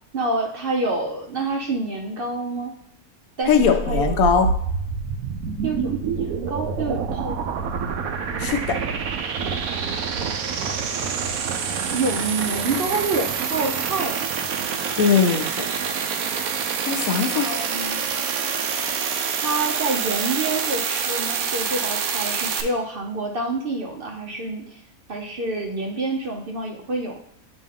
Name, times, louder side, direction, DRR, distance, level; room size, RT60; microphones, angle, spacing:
voice 1, 0.1-2.7 3.4-4.2 5.6-7.3 11.9-14.2 17.3-18.0 19.4-24.8 25.1-27.2, right 2 dB, 50° right, 1 dB, 0.8 m, -27 dB
sound 1, 3.4-22.6, right 6 dB, 75° right, 1.1 m, -26 dB
voice 2, 3.5-4.5 8.4-8.8 15.0-15.4 16.8-17.5, left 6 dB, 75° left, 6 dB, 1.1 m, -20 dB
8.7 x 3.0 x 3.7 m, 0.70 s
omnidirectional pair, 1.5 m